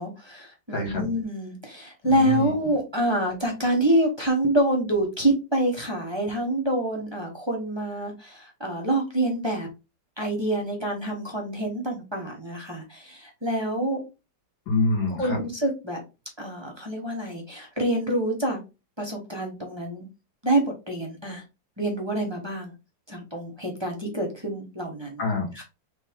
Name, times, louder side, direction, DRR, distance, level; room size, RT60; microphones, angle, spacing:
voice 1, 0.0-9.7 10.2-14.0 15.1-16.0 16.4-18.6 19.0-20.1 20.4-21.4 21.8-22.7 23.1-25.2 25.5-25.6, right 1 dB, 20° right, 0 dB, 0.7 m, -27 dB
voice 2, 0.7-1.1 2.2-2.5 14.7-15.4 25.2-25.5, left 2 dB, 75° left, 0 dB, 2.2 m, -25 dB
4.1 x 3.4 x 3.6 m, 0.27 s
omnidirectional pair, 2.1 m